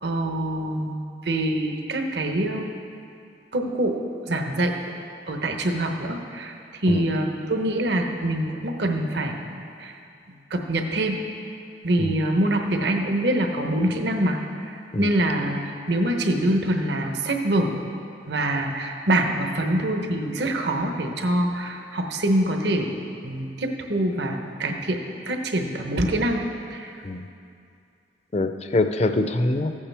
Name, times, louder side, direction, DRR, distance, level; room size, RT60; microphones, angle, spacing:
voice 1, 0.0-2.7 3.5-4.7 5.3-6.5 6.8-9.9 10.5-11.2 11.8-17.8 18.3-25.0 25.3-26.4 26.7-27.0, right 1 dB, 65° right, 3 dB, 1.0 m, -25 dB
voice 2, 28.3-29.7, left 2 dB, 35° left, 7 dB, 0.5 m, -24 dB
15.0 x 8.6 x 3.4 m, 2.5 s
head